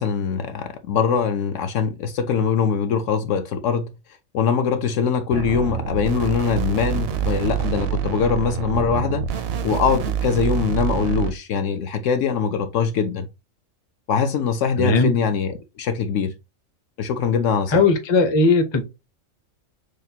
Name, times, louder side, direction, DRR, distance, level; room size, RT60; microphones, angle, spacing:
voice 1, 0.0-3.9 4.3-9.2 9.6-13.3 14.1-16.3 17.0-17.8, left 6 dB, 70° left, 0.8 m, -22 dB
sound 1, 5.3-11.3, right 8 dB, 65° right, 0.6 m, -26 dB
voice 2, 14.8-15.2 17.7-18.8, left 3 dB, 30° left, 0.5 m, -18 dB
6.4 x 2.1 x 2.7 m
omnidirectional pair, 1.4 m